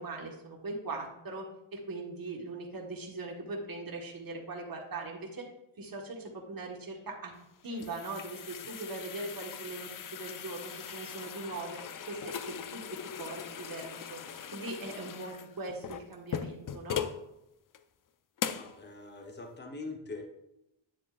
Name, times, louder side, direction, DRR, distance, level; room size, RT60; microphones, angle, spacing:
voice 1, 0.0-1.5 1.7-5.4 5.8-7.3 7.6-11.8 12.1-12.8 13.2-14.2 14.5-17.1, right 2 dB, 45° right, 0 dB, 1.5 m, -40 dB
sound 1, 7.4-17.2 17.7-17.8 18.4-18.8, left 8 dB, 45° left, 0.5 m, -40 dB
voice 2, 18.5-20.2, left 3 dB, 20° left, 2 dB, 1.0 m, -43 dB
9.7 x 6.9 x 2.5 m, 0.89 s
wide cardioid pair, 105°, 49 cm